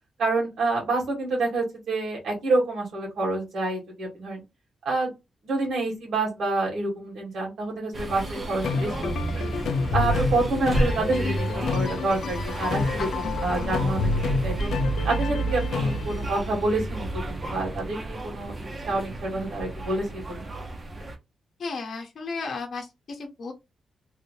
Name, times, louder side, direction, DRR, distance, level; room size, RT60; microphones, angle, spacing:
voice 1, 0.2-4.4 4.9-5.1 5.4-9.5 9.9-11.5 11.7-14.7 15.0-18.5 18.9-20.5, right 2 dB, 75° right, -1 dB, 1.8 m, -28 dB
sound 1, 7.9-21.2, right 2 dB, 25° right, 0.7 m, -31 dB
sound 2, 8.0-16.3, left 4 dB, 75° left, 0.4 m, -29 dB
voice 2, 13.0-13.3 21.6-23.5, left 4 dB, 50° left, 2 dB, 0.8 m, -34 dB
3.3 x 2.6 x 3.1 m, 0.23 s
wide cardioid pair, 160°, 0 cm